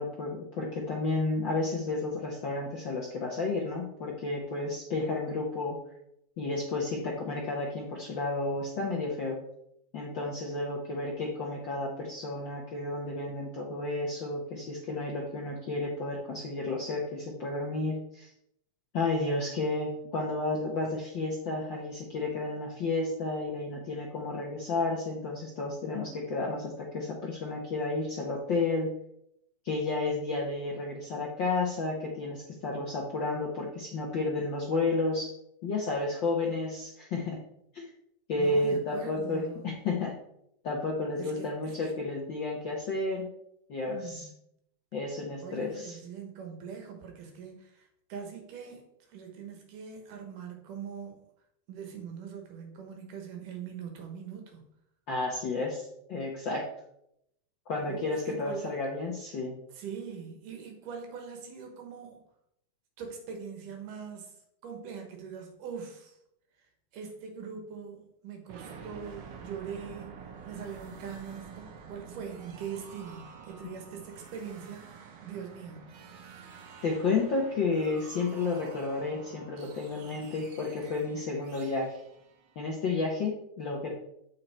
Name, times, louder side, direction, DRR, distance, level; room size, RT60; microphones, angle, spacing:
voice 1, 0.0-5.8 6.4-9.4 9.9-18.3 18.9-28.9 29.6-35.3 35.6-37.4 37.7-37.8 38.3-40.1 40.6-43.3 43.7-44.3 44.9-46.0 55.1-56.7 57.7-59.6 76.8-82.0 82.5-83.9, left 3 dB, 65° left, -2 dB, 1.1 m, -32 dB
voice 2, 38.4-39.7 41.2-41.9 43.9-44.3 45.4-51.2 51.7-54.7 57.9-58.7 59.7-62.2 63.0-64.4 64.6-66.2 66.9-75.9, right 7 dB, 90° right, 3 dB, 3.0 m, -42 dB
sound 1, 68.5-83.2, right 6 dB, 65° right, 1.5 m, -49 dB
8.1 x 5.6 x 4.4 m, 0.77 s
omnidirectional pair, 3.6 m